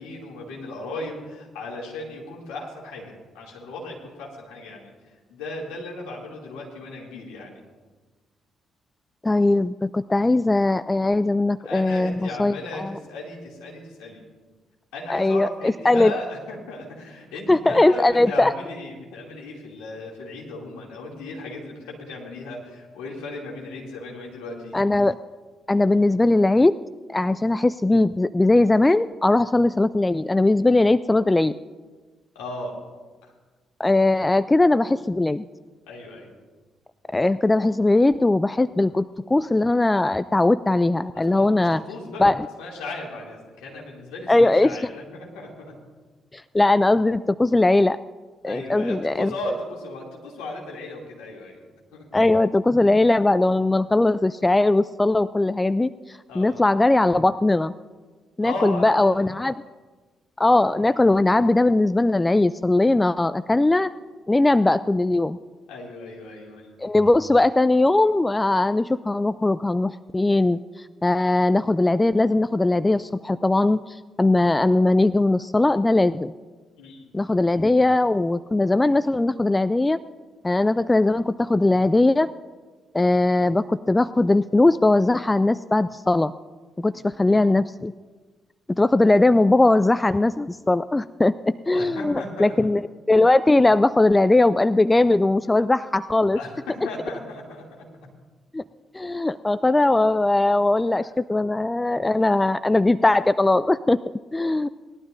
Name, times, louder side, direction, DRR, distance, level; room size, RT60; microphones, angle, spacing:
voice 1, 0.0-4.9 5.3-7.6 11.6-14.2 14.9-24.7 32.3-32.7 33.2-33.3 35.9-36.3 41.1-42.3 42.6-45.7 48.5-51.6 51.9-52.1 56.3-56.6 58.4-59.1 65.7-66.8 76.8-77.1 91.7-92.5 95.4-95.5 96.4-97.6, left 2 dB, 75° left, -3 dB, 2.7 m, -36 dB
voice 2, 9.2-12.9 15.1-16.1 17.5-18.5 24.7-25.1 25.7-26.7 27.1-31.6 33.8-35.4 37.1-41.8 42.2-42.5 44.3-44.8 46.3-48.0 48.4-49.3 52.1-57.7 58.4-59.6 60.4-63.9 64.3-65.4 66.8-76.3 77.1-80.0 80.4-82.3 82.9-86.3 86.8-87.9 88.7-92.8 93.1-96.4 98.5-98.6 98.9-104.0 104.3-104.7, left 2 dB, 20° left, 16 dB, 0.3 m, -20 dB
19.5 x 12.0 x 2.7 m, 1.3 s
hypercardioid pair, 45°, 0 cm